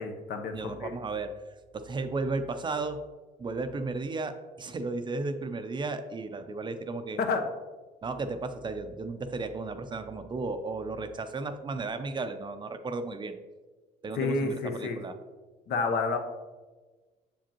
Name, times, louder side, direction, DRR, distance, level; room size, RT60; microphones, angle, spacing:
voice 1, 0.0-0.9 7.2-7.5 14.1-15.0 15.7-16.2, left 4 dB, 70° left, 5 dB, 0.8 m, -29 dB
voice 2, 0.5-1.3 1.7-3.0 3.4-7.2 8.0-13.3 14.0-15.1, right 3 dB, 25° right, 8 dB, 0.5 m, -34 dB
7.0 x 5.1 x 2.9 m, 1.3 s
cardioid pair, 110°, 17 cm